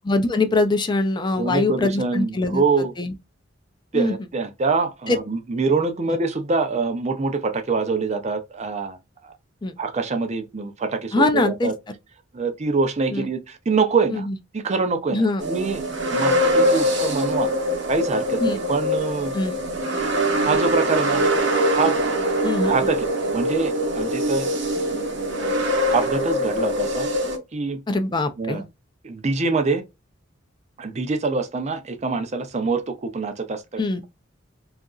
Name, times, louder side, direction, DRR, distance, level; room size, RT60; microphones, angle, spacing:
voice 1, 0.0-2.6 3.0-3.1 3.9-4.1 5.1-5.2 6.1-6.2 9.6-9.7 11.1-11.7 13.1-13.3 14.1-14.4 15.1-15.4 18.4-18.6 19.3-19.5 22.4-22.7 27.9-28.6 33.8-34.0, left 2 dB, 25° left, 0.4 m, -22 dB
voice 2, 1.4-2.9 3.9-9.0 9.2-9.3 9.8-11.8 12.4-14.3 14.5-15.8 16.1-17.5 17.9-19.3 20.4-21.2 21.5-22.0 22.6-24.5 24.9-25.1 25.4-25.5 25.9-27.1 27.5-27.8 28.4-28.6 29.0-29.8 30.8-34.0, right 4 dB, 35° right, 0.5 m, -25 dB
sound 1, 15.4-27.4, equal, 65° right, 0.8 m, -23 dB
2.8 x 2.4 x 2.3 m
head